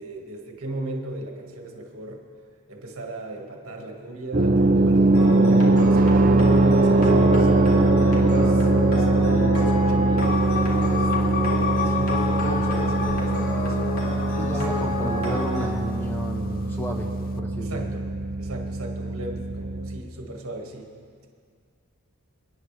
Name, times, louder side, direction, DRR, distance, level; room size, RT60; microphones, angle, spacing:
voice 1, 0.0-2.2 2.7-4.6 4.8-7.8 8.1-10.4 10.6-13.9 14.5-14.6 17.6-18.1 18.4-20.9, right 1 dB, 70° right, 1 dB, 1.8 m, -38 dB
sound 1, 4.3-20.0, right 2 dB, 40° right, 0.6 m, -21 dB
sound 2, 5.1-15.7, left 1 dB, 75° left, 2.5 m, -29 dB
sound 3, 10.2-16.6, left 7 dB, 40° left, 0.3 m, -33 dB
voice 2, 14.4-17.1 17.4-17.9, equal, 10° left, 1 dB, 1.0 m, -32 dB
28.0 x 9.6 x 3.3 m, 2.1 s
head